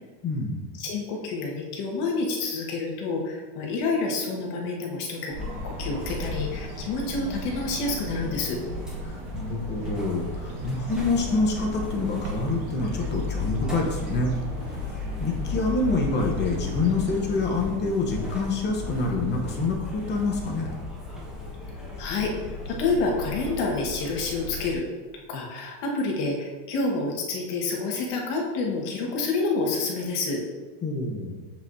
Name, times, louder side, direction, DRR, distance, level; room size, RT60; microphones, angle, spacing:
voice 1, 0.2-0.6 9.0-14.3 14.7-14.9 15.2-20.7 30.8-31.4, left 3 dB, 20° left, 0 dB, 0.9 m, -27 dB
voice 2, 0.8-5.3 5.6-8.6 22.0-22.3 22.6-24.8 25.3-30.4, left 3 dB, 50° left, -1 dB, 1.6 m, -28 dB
sound 1, 5.3-17.4, right 2 dB, 60° right, 1.8 m, -39 dB
sound 2, 5.4-24.7, left 3 dB, ahead, 1.3 m, -35 dB
7.4 x 7.1 x 2.7 m, 1.3 s
supercardioid pair, 165°, 48 cm